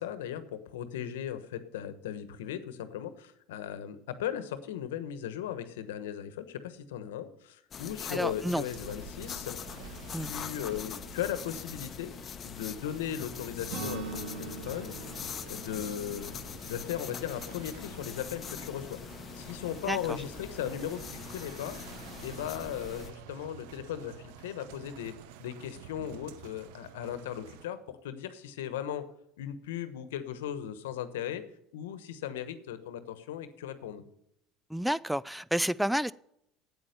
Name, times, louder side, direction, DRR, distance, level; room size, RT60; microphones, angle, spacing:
voice 1, 0.0-9.7 10.2-12.1 12.4-14.9 15.5-19.0 19.3-21.8 22.2-29.0 29.4-31.4 31.7-34.0, left 10 dB, 85° left, 12 dB, 1.1 m, -37 dB
sound 1, 7.7-23.1, left 7 dB, 40° left, 0.9 m, -43 dB
voice 2, 8.1-8.6 10.1-10.3 19.8-20.2 34.7-36.1, equal, 5° right, 20 dB, 0.3 m, -30 dB
sound 2, 8.7-27.7, right 10 dB, 75° right, 0.8 m, -50 dB
Acoustic guitar / Strum, 13.7-17.7, right 4 dB, 60° right, 2.4 m, -43 dB
8.7 x 8.6 x 6.7 m, 0.78 s
hypercardioid pair, 90°, 0 cm